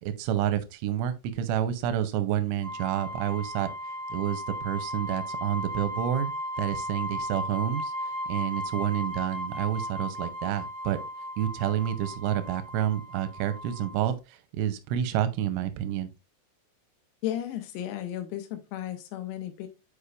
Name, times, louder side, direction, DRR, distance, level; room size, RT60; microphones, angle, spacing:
voice 1, 0.0-3.7 4.1-6.3 6.6-11.0 11.4-16.1, right 10 dB, 85° right, 2.9 m, -29 dB
sound 1, 2.6-14.0, equal, 30° left, 1.5 m, -36 dB
voice 2, 17.2-19.7, left 12 dB, 90° left, 3.7 m, -34 dB
8.2 x 5.1 x 2.4 m
omnidirectional pair, 6.0 m